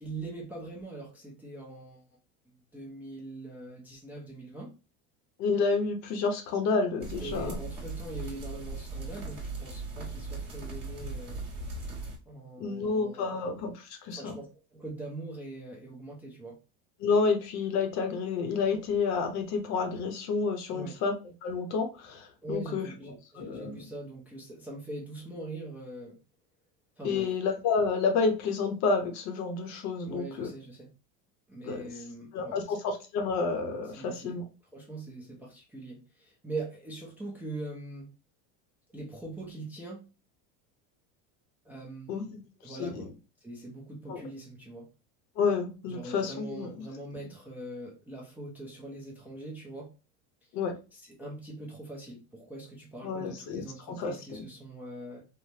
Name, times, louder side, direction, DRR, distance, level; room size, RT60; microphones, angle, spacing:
voice 1, 0.0-2.0 2.5-4.7 7.2-11.4 12.3-13.3 14.1-14.5 14.7-16.6 20.7-21.0 22.4-26.2 27.0-27.3 30.0-30.9 31.5-32.6 33.9-34.4 34.7-38.1 38.9-40.0 41.6-43.1 43.4-44.9 45.9-49.9 50.9-55.2, right 2 dB, 5° right, 0.4 m, -42 dB
voice 2, 5.4-7.6 12.6-14.4 17.0-21.1 21.4-22.9 23.4-23.8 27.0-30.5 31.7-31.8 32.3-34.4 42.1-43.1 44.1-44.2 45.4-46.9 50.5-50.7 53.0-54.4, left 4 dB, 50° left, 0.7 m, -30 dB
sound 1, 7.0-12.2, right 3 dB, 30° right, 1.2 m, -38 dB
3.2 x 2.0 x 2.6 m
cardioid pair, 145°, 35 cm